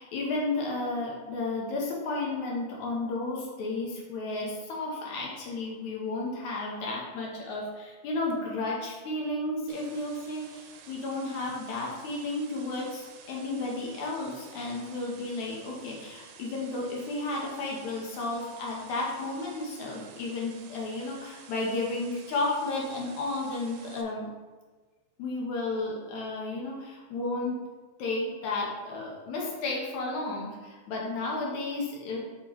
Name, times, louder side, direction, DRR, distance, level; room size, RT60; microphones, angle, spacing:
voice 1, 0.0-24.3 25.2-27.6 28.0-32.2, left 2 dB, 75° left, -2 dB, 1.8 m, -33 dB
sound 1, 9.7-24.0, right 7 dB, 80° right, 2.1 m, -51 dB
7.2 x 5.7 x 3.0 m, 1.4 s
omnidirectional pair, 4.4 m